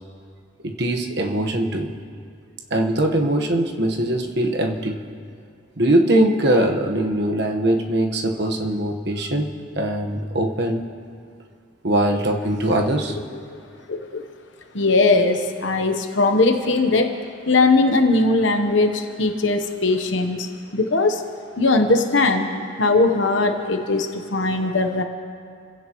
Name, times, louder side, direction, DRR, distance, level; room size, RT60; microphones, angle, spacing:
voice 1, 0.6-1.9 2.7-5.0 5.8-9.5 9.7-10.8 11.8-13.2, right 1 dB, 55° right, 2 dB, 1.3 m, -21 dB
voice 2, 13.9-14.2 14.7-17.1 17.5-20.5 20.7-21.2 21.6-22.5 22.8-25.0, left 3 dB, 65° left, 5 dB, 1.0 m, -19 dB
29.0 x 16.0 x 3.1 m, 2.3 s
head